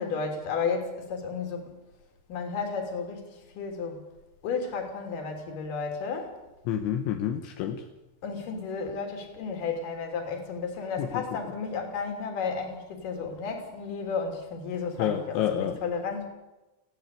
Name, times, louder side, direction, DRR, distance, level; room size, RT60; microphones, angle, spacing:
voice 1, 0.0-1.8 2.3-4.0 4.4-6.4 8.2-16.3, left 5 dB, 50° left, 4 dB, 4.4 m, -33 dB
voice 2, 6.7-7.8 11.0-11.2 15.0-15.8, left 10 dB, 80° left, 5 dB, 3.4 m, -29 dB
19.5 x 15.5 x 8.4 m, 1.0 s
omnidirectional pair, 5.5 m